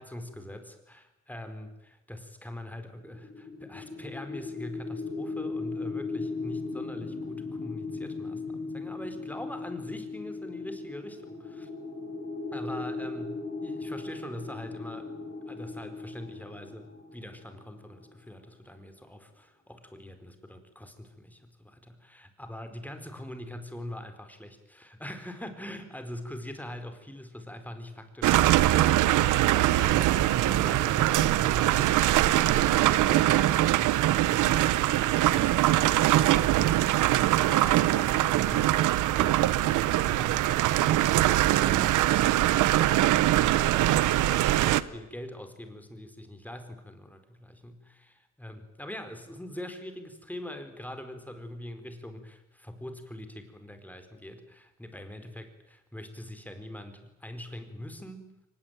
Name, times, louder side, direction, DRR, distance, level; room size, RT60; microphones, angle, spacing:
voice 1, 0.0-11.7 12.5-15.2 15.5-58.3, left 1 dB, 5° left, 7 dB, 4.5 m, -43 dB
sound 1, 2.9-18.0, left 3 dB, 40° left, 5.7 m, -38 dB
sound 2, 28.2-44.8, right 14 dB, 85° right, 0.9 m, -23 dB
23.5 x 20.5 x 9.1 m, 0.92 s
cardioid pair, 90°, 30 cm